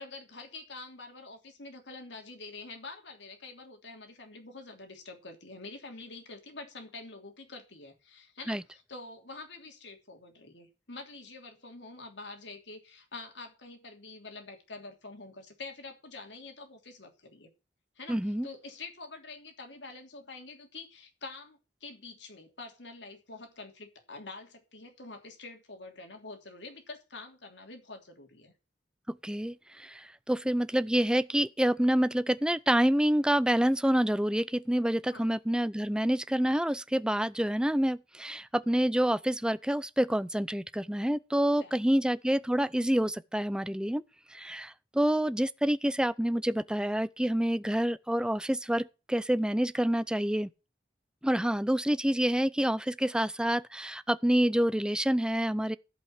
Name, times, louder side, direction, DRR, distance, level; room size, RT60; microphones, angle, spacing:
voice 1, 0.0-17.5 18.0-18.2 18.4-28.5 35.1-35.3 41.6-42.0, left 3 dB, 75° left, 3.1 m, -46 dB
voice 2, 18.1-18.5 29.1-44.0 44.3-50.5 51.2-55.8, right 1 dB, 5° right, 0.5 m, -27 dB
15.0 x 5.6 x 6.1 m
head